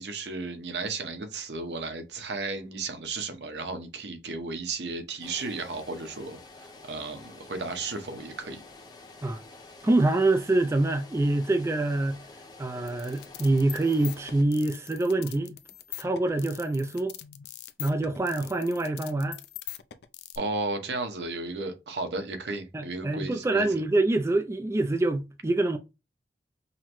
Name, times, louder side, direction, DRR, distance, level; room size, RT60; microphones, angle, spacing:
voice 1, 0.0-8.6 20.4-23.7, right 3 dB, 75° right, 0.9 m, -34 dB
sound 1, 5.2-14.4, left 2 dB, 25° left, 0.7 m, -49 dB
voice 2, 9.8-12.2 12.6-15.5 16.0-17.1 17.8-19.4 22.7-25.8, right 2 dB, 15° right, 0.3 m, -25 dB
sound 2, 12.9-20.4, left 14 dB, 65° left, 0.4 m, -42 dB
5.6 x 2.1 x 3.0 m
head